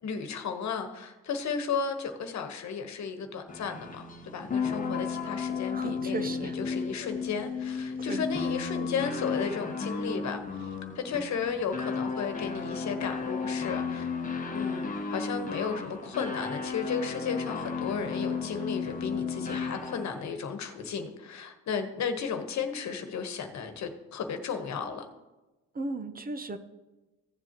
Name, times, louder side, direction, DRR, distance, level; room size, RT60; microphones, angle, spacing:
voice 1, 0.0-10.7 10.9-14.1 14.5-25.0, left 6 dB, 65° left, 7 dB, 1.2 m, -34 dB
sound 1, 3.5-20.2, left 5 dB, 25° left, 1.2 m, -34 dB
voice 2, 5.7-6.6 8.0-8.2 25.7-26.6, right 2 dB, 30° right, 10 dB, 0.7 m, -36 dB
15.5 x 7.4 x 3.0 m, 1.1 s
cardioid pair, 90°, 30 cm